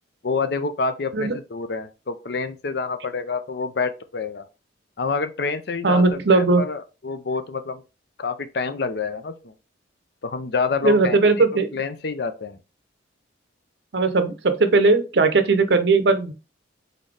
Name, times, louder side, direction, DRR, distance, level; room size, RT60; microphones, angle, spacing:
voice 1, 0.2-4.5 5.0-7.8 8.2-9.5 10.2-11.4 11.7-12.6, left 4 dB, 60° left, 0.5 m, -28 dB
voice 2, 5.8-6.6 10.8-11.7 13.9-16.3, right 3 dB, 60° right, 0.7 m, -18 dB
4.1 x 4.0 x 3.2 m
head